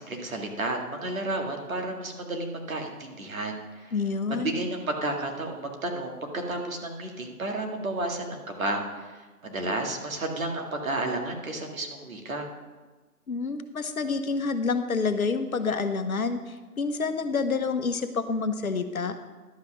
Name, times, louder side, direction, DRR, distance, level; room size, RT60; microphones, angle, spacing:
voice 1, 0.0-3.9 4.3-12.5, right 2 dB, 60° right, 2 dB, 2.1 m, -32 dB
voice 2, 3.9-4.6 13.3-19.2, left 4 dB, 65° left, 9 dB, 1.0 m, -28 dB
11.5 x 5.8 x 6.2 m, 1.3 s
figure-of-eight pair, 155°, 46 cm